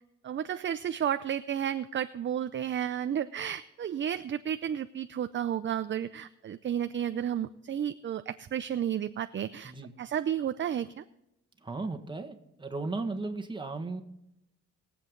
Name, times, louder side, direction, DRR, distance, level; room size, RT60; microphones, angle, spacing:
voice 1, 0.2-9.7 10.0-11.0, right 9 dB, 40° right, 11 dB, 0.5 m, -32 dB
voice 2, 11.6-14.0, right 3 dB, 15° right, 5 dB, 1.7 m, -36 dB
21.5 x 7.9 x 3.9 m, 0.86 s
cardioid pair, 90°, 30 cm